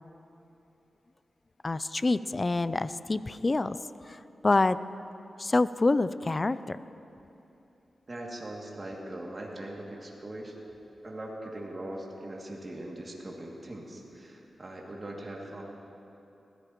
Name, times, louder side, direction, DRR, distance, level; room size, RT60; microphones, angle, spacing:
voice 1, 1.6-3.8 4.0-4.8 5.4-6.8, left 2 dB, 40° left, 15 dB, 0.4 m, -27 dB
voice 2, 8.1-10.6 11.0-15.6, right 1 dB, 40° right, -2 dB, 2.4 m, -40 dB
19.5 x 15.0 x 3.0 m, 3.0 s
cardioid pair, 50°, 0 cm